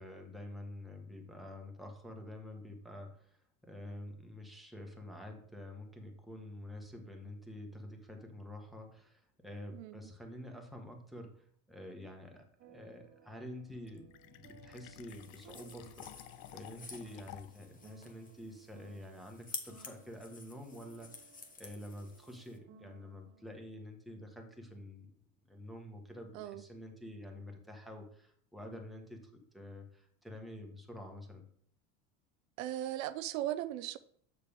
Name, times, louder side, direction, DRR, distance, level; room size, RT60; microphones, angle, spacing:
voice 1, 0.0-25.1 25.5-31.4, left 1 dB, ahead, 2 dB, 1.5 m, -48 dB
voice 2, 9.7-10.1 26.3-26.6 32.6-34.0, right 13 dB, 75° right, 12 dB, 0.6 m, -38 dB
sound 1, 12.6-23.5, right 8 dB, 35° right, 0.7 m, -61 dB
Fill (with liquid), 13.7-17.7, left 15 dB, 60° left, 0.5 m, -53 dB
sound 2, 15.1-22.6, left 3 dB, 20° left, 1.3 m, -51 dB
6.8 x 6.6 x 3.6 m, 0.62 s
supercardioid pair, 105°, 42 cm